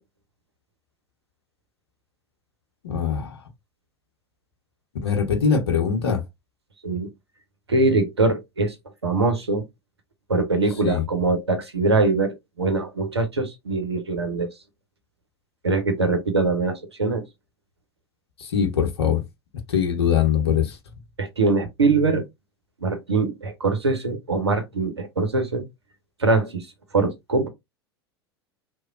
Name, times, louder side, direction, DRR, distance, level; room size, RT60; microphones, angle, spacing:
voice 1, 2.8-3.4 5.0-6.2 10.8-11.0 18.4-19.2 19.7-20.8, left 7 dB, 75° left, 0.8 m, -22 dB
voice 2, 7.7-8.7 9.0-9.6 10.3-14.5 15.6-17.2 21.2-22.2 22.8-25.6 26.2-26.7 26.9-27.5, right 3 dB, 85° right, 0.7 m, -22 dB
2.9 x 2.2 x 2.4 m
figure-of-eight pair, 80°, 14 cm